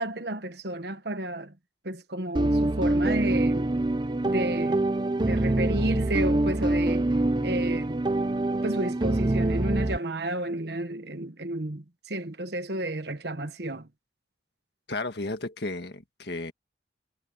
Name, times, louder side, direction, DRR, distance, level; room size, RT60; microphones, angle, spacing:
voice 1, 0.0-1.5 1.8-3.7 4.2-4.8 5.3-7.1 7.4-8.0 8.6-13.9, right 1 dB, 60° right, 1.4 m, -32 dB
sound 1, 2.3-10.0, right 2 dB, 25° right, 0.6 m, -25 dB
voice 2, 14.9-16.5, left 2 dB, 60° left, 1.8 m, -33 dB
head